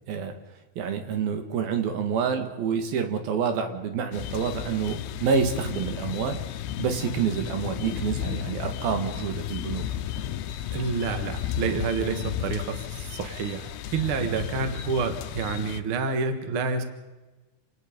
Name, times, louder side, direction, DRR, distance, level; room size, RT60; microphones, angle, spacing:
voice 1, 0.8-6.4 6.8-9.8 14.2-14.3, right 6 dB, 65° right, 7 dB, 3.4 m, -28 dB
sound 1, 4.1-15.8, left 11 dB, 80° left, 2.8 m, -34 dB
voice 2, 10.7-16.8, right 5 dB, 50° right, 8 dB, 1.7 m, -28 dB
29.0 x 18.5 x 5.2 m, 1.1 s
omnidirectional pair, 4.7 m